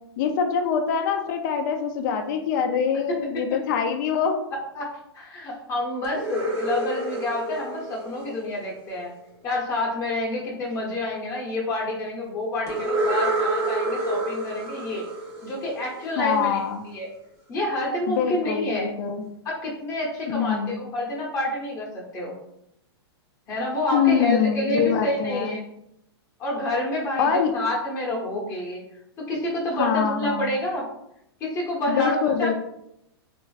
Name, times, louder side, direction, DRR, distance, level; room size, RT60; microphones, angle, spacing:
voice 1, 0.2-4.4 16.2-16.8 18.1-19.2 20.3-20.7 23.9-25.6 27.2-27.5 29.7-30.5 31.9-32.6, left 7 dB, 45° left, 6 dB, 0.4 m, -24 dB
voice 2, 5.1-9.1 9.4-15.0 15.4-17.1 17.5-18.9 19.4-22.3 23.5-25.6 26.4-28.8 29.2-30.9 31.4-32.6, left 1 dB, 25° left, -4 dB, 0.8 m, -28 dB
sound 1, 6.0-9.0 12.7-16.4, right 2 dB, 25° right, 0.7 m, -29 dB
3.1 x 2.5 x 2.3 m, 0.80 s
hypercardioid pair, 140°, 14 cm